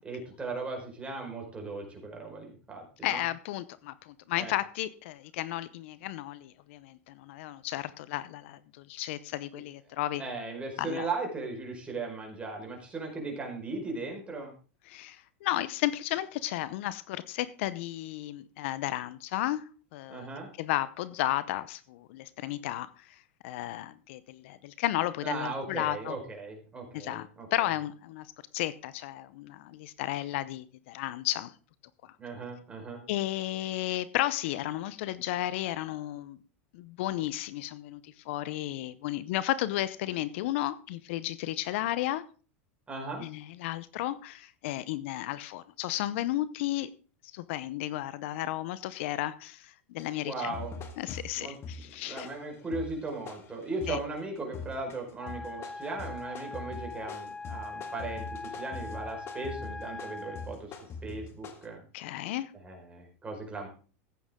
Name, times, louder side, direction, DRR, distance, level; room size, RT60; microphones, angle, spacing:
voice 1, 0.0-3.2 4.3-4.5 10.2-14.5 20.1-20.5 25.2-27.5 32.2-33.0 42.9-43.2 50.2-50.8 51.4-51.5 52.0-61.8 62.5-63.7, right 3 dB, 15° right, 1 dB, 4.8 m, -37 dB
voice 2, 3.0-10.2 10.8-11.1 14.9-20.3 20.6-26.2 26.9-28.3 28.5-31.5 33.1-36.4 36.7-42.2 43.2-46.9 47.3-50.5 51.0-52.3 53.9-54.0 61.9-62.5, left 15 dB, 65° left, 16 dB, 0.7 m, -33 dB
sound 1, 50.0-50.1 50.5-54.1 54.5-55.0 55.3-61.6, left 4 dB, 35° left, 2.0 m, -43 dB
Wind instrument woodwind instrument, 55.2-60.6, left 3 dB, 10° left, 0.5 m, -41 dB
14.5 x 8.7 x 3.7 m, 0.37 s
supercardioid pair, 120°, 7 cm